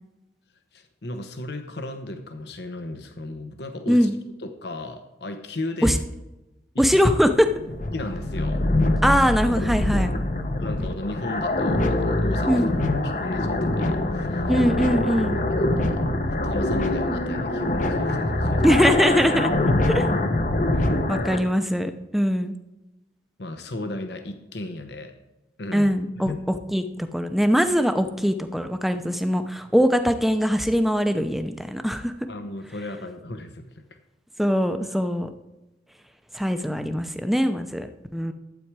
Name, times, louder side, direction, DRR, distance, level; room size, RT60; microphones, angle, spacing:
voice 1, 0.7-4.1 4.4-6.0 6.7-6.9 7.9-8.6 10.6-12.7 13.0-14.5 15.3-16.1 16.4-18.7 20.7-20.9 21.4-21.5 23.4-25.1 25.6-25.9 26.2-26.4 32.3-34.0, left 2 dB, 70° left, 7 dB, 1.0 m, -35 dB
voice 2, 6.8-7.5 9.0-10.1 12.5-12.7 14.5-15.4 18.6-19.5 19.9-20.1 21.1-22.5 25.7-26.3 26.7-26.8 27.1-32.1 34.4-35.3 36.3-37.9 38.1-38.3, equal, ahead, 8 dB, 0.6 m, -21 dB
sound 1, 7.2-21.4, left 1 dB, 45° left, 0.8 m, -24 dB
12.0 x 8.5 x 4.8 m, 1.0 s
head